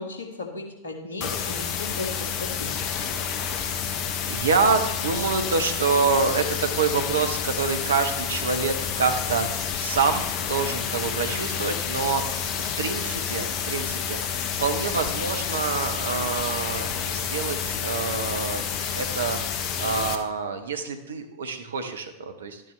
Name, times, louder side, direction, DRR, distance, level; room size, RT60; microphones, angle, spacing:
voice 1, 0.0-2.8, left 3 dB, 70° left, 3 dB, 1.9 m, -36 dB
sound 1, 1.2-20.2, left 7 dB, 40° left, 0.9 m, -29 dB
voice 2, 3.7-18.7 19.0-19.4 19.8-22.6, right 5 dB, 70° right, 7 dB, 1.1 m, -27 dB
12.5 x 8.8 x 3.3 m, 1.0 s
figure-of-eight pair, 90°, 0 cm